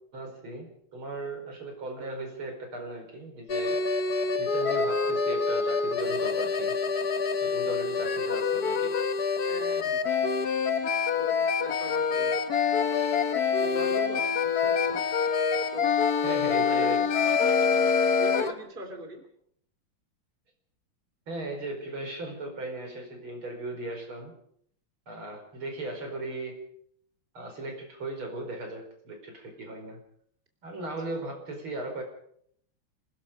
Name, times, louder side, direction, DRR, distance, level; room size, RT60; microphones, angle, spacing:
voice 1, 0.1-3.8 4.4-6.8 7.4-8.9 14.6-15.0 16.2-17.0 21.3-24.4 25.1-26.7 27.3-30.0 30.6-32.0, right 2 dB, 70° right, 3 dB, 5.8 m, -37 dB
sound 1, 3.5-18.5, left 5 dB, 50° left, 1.7 m, -26 dB
voice 2, 9.5-10.0 11.0-12.3 13.6-14.3 15.7-15.9 16.3-17.1 17.6-19.2 30.8-30.9, right 1 dB, 25° right, 4 dB, 3.2 m, -41 dB
27.0 x 19.5 x 5.2 m, 0.67 s
omnidirectional pair, 2.4 m